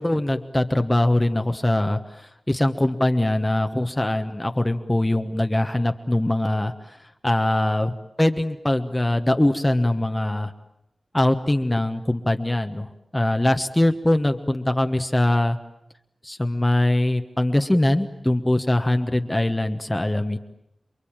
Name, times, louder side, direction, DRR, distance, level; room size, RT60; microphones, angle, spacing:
voice 1, 0.0-7.0 7.2-10.5 11.1-12.9 13.1-15.6 16.2-20.4, left 1 dB, 15° left, 6 dB, 1.2 m, -22 dB
29.0 x 22.5 x 8.9 m, 0.84 s
wide cardioid pair, 95°, 0 cm